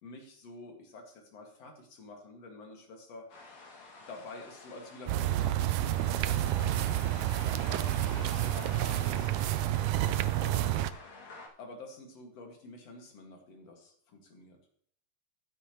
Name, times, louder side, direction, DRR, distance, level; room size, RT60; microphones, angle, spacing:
voice 1, 0.0-3.3 4.1-5.8 6.3-9.4 10.0-11.0 11.6-14.6, left 2 dB, 50° left, 2 dB, 2.8 m, -48 dB
sound 1, 3.3-11.5, left 3 dB, 85° left, 4.0 m, -48 dB
sound 2, 5.1-10.9, right 13 dB, 85° right, 1.6 m, -29 dB
15.0 x 9.0 x 3.1 m, 0.62 s
omnidirectional pair, 3.9 m